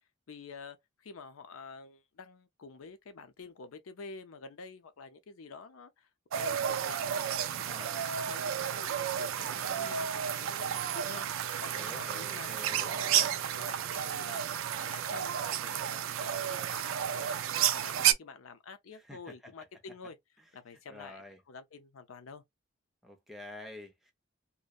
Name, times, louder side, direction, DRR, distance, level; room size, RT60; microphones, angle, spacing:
voice 1, 0.3-6.1 6.3-20.2 20.5-22.4, left 4 dB, 80° left, 0.5 m, -49 dB
sound 1, 6.3-18.1, right 9 dB, 70° right, 0.3 m, -32 dB
voice 2, 11.7-13.0 19.1-19.3 20.9-21.4 23.0-24.1, left 1 dB, ahead, 0.5 m, -47 dB
2.6 x 2.1 x 2.3 m
head